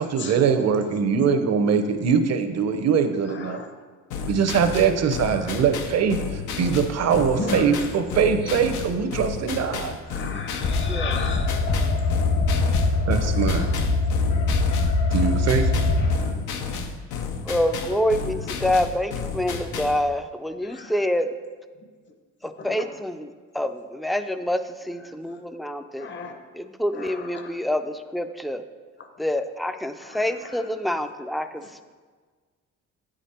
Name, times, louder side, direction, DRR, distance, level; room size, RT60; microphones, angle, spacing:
voice 1, 0.0-3.6 4.3-10.0 13.1-13.7 15.1-15.8, right 6 dB, 60° right, 8 dB, 0.8 m, -22 dB
sound 1, 4.1-20.0, left 5 dB, 90° left, 0.7 m, -32 dB
voice 2, 10.1-11.5 13.5-13.7 20.7-20.9 22.6-22.9 26.0-26.3 26.9-27.5 30.0-30.2 30.5-30.6, left 4 dB, 40° left, 6 dB, 0.8 m, -34 dB
sound 2, 10.6-16.2, left 3 dB, 60° left, 1.3 m, -22 dB
voice 3, 10.9-11.2 17.5-21.3 22.4-24.6 24.9-26.1 26.5-28.6 29.2-31.5, left 1 dB, ahead, 9 dB, 0.4 m, -26 dB
9.0 x 5.1 x 4.3 m, 1.5 s
cardioid pair, 90°, 30 cm